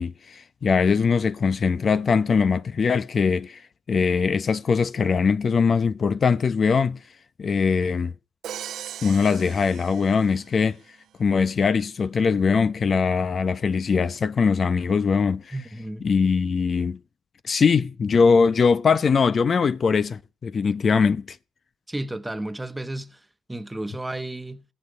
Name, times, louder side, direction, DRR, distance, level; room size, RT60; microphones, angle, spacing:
voice 1, 0.0-3.6 3.9-7.0 7.4-8.1 9.0-10.8 11.2-15.5 16.0-17.0 17.4-21.4, left 5 dB, 45° left, 0.8 m, -21 dB
Crash cymbal, 8.4-10.6, right 10 dB, 70° right, 0.7 m, -39 dB
voice 2, 15.5-16.1 21.9-24.6, right 1 dB, 10° right, 1.3 m, -33 dB
17.5 x 6.8 x 9.8 m
cardioid pair, 90°, 0 cm